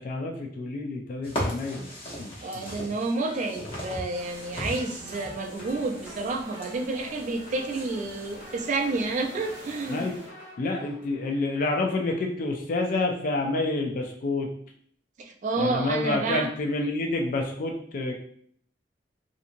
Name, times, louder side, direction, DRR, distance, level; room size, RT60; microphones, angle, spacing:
voice 1, 0.0-1.9 2.2-2.6 9.9-10.2 10.6-14.5 15.6-18.1, left 2 dB, 50° left, 2 dB, 0.4 m, -28 dB
sound 1, 1.2-8.4, equal, 30° left, 0.8 m, -38 dB
voice 2, 2.4-10.1 15.2-16.5, right 3 dB, 45° right, 3 dB, 0.3 m, -30 dB
sound 2, 3.0-12.1, left 1 dB, 70° left, 1.1 m, -49 dB
sound 3, 4.2-10.3, right 1 dB, 70° right, 0.8 m, -47 dB
2.7 x 2.5 x 2.5 m, 0.63 s
head